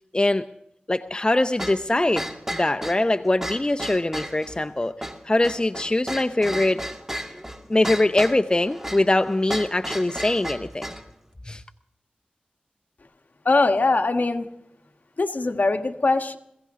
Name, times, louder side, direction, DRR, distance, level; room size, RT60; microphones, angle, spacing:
voice 1, 0.1-0.4 0.9-6.8 7.7-10.8 11.5-11.6, left 2 dB, 30° left, 8 dB, 0.6 m, -22 dB
sound 1, 1.6-11.1, equal, 15° right, 2.0 m, -34 dB
voice 2, 13.4-14.5 15.2-16.4, left 3 dB, 60° left, 6 dB, 1.4 m, -21 dB
22.0 x 16.5 x 3.7 m, 0.81 s
cardioid pair, 40°, 3 cm